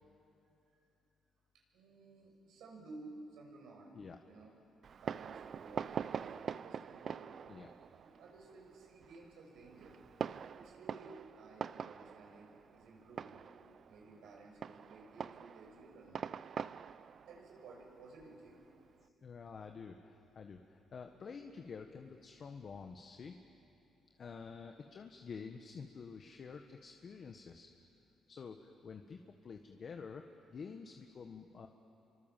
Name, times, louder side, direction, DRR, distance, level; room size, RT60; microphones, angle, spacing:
voice 1, 1.5-3.9 4.2-4.5 5.0-7.3 8.0-10.0 10.5-13.4 13.9-16.3 17.2-18.6, right 3 dB, 80° right, 0 dB, 6.8 m, -55 dB
Fireworks, 4.8-19.0, right 7 dB, 55° right, 0.5 m, -45 dB
voice 2, 19.2-23.4 24.2-27.8 28.3-30.2 30.5-31.7, left 5 dB, 50° left, 4 dB, 1.5 m, -49 dB
29.5 x 24.5 x 7.5 m, 2.8 s
cardioid pair, 90°, 0 cm